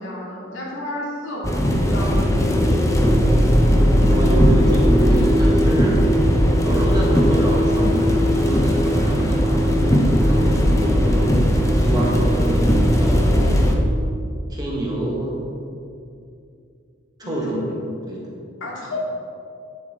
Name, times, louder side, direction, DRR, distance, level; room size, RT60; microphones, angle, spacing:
voice 1, 0.0-2.5 17.2-17.8 18.6-19.0, left 1 dB, 75° left, -4 dB, 2.3 m, -31 dB
sound 1, 1.4-13.7, equal, 15° left, 0.7 m, -17 dB
voice 2, 3.9-6.0 6.6-11.3 11.7-13.9 14.5-15.4 17.2-18.4, right 1 dB, 20° right, -4 dB, 1.5 m, -27 dB
9.6 x 7.7 x 3.6 m, 2.5 s
head